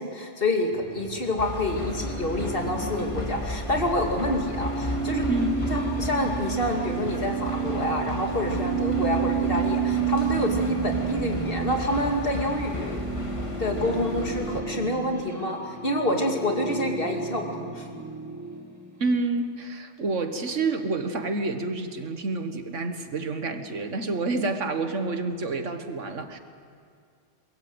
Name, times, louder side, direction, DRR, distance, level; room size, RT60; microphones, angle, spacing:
voice 1, 0.0-5.3 5.7-13.0 13.6-17.9, left 1 dB, 50° left, 1 dB, 2.8 m, -27 dB
sound 1, 0.7-13.1, right 4 dB, 30° right, 4.9 m, -44 dB
sound 2, 1.4-14.6, left 2 dB, 25° left, 2.0 m, -34 dB
sound 3, 2.0-19.2, right 7 dB, 15° right, 1.8 m, -31 dB
voice 2, 19.0-26.4, right 3 dB, 85° right, 7 dB, 1.8 m, -28 dB
23.5 x 21.5 x 8.0 m, 2.2 s
omnidirectional pair, 1.2 m